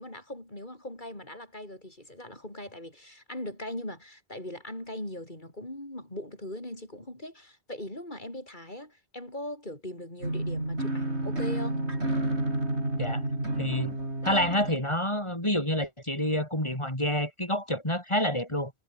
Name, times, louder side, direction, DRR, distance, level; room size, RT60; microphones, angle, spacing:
voice 1, 0.0-11.8, left 1 dB, 45° left, 7.2 m, -40 dB
sound 1, 10.2-14.8, right 1 dB, 90° right, 7.4 m, -30 dB
voice 2, 13.6-13.9 14.2-18.7, left 1 dB, 25° left, 6.9 m, -28 dB
omnidirectional pair, 1.1 m